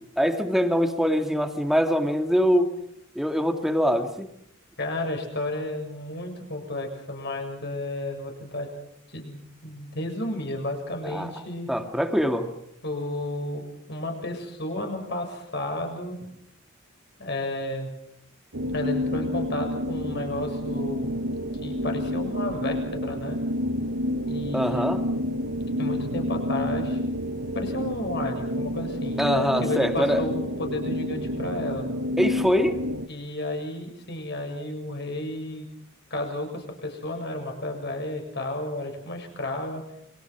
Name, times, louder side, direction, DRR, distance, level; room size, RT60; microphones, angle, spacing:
voice 1, 0.0-2.7 3.2-4.3 11.0-11.3 11.7-12.5 24.5-25.0 29.2-30.2 32.2-32.8, equal, ahead, 5 dB, 2.1 m, -23 dB
voice 2, 4.8-8.7 9.1-11.7 12.8-16.3 17.2-17.9 18.7-21.1 21.6-23.4 24.2-24.9 25.8-27.0 27.5-31.9 33.1-35.7 36.1-39.8, left 1 dB, 55° left, 3 dB, 7.0 m, -32 dB
sound 1, 18.5-33.1, left 1 dB, 80° right, 1.3 m, -29 dB
29.5 x 25.0 x 6.1 m, 0.74 s
head